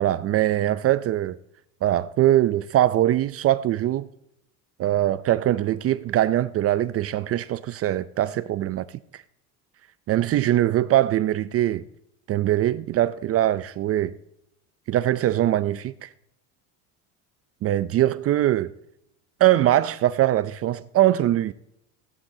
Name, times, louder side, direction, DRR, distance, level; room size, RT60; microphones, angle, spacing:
voice 1, 0.0-1.4 1.8-4.1 4.8-8.8 9.1-9.2 10.1-11.9 12.3-14.2 14.9-16.1 17.6-18.7 19.4-21.5, right 13 dB, 40° right, 0.4 m, -22 dB
17.0 x 10.5 x 2.7 m
cardioid pair, 120°, 38 cm